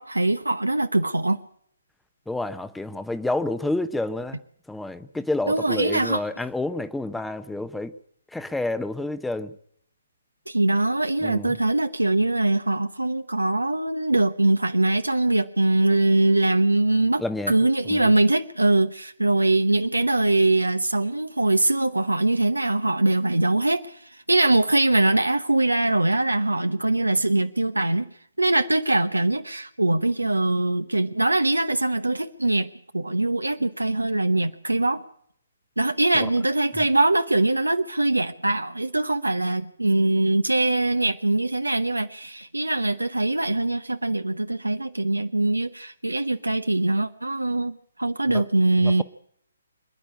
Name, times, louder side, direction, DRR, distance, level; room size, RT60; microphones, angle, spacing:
voice 1, 0.0-1.4 5.5-6.2 10.5-28.1 28.4-35.0 35.8-49.0, right 2 dB, 85° right, 0.9 m, -22 dB
voice 2, 2.3-4.4 4.7-7.9 8.3-9.5 11.2-11.5 17.2-17.5 17.8-18.1 36.1-36.3 48.3-48.4 48.8-49.0, left 2 dB, 5° left, 0.8 m, -29 dB
26.5 x 10.5 x 9.7 m
figure-of-eight pair, 135°, 0 cm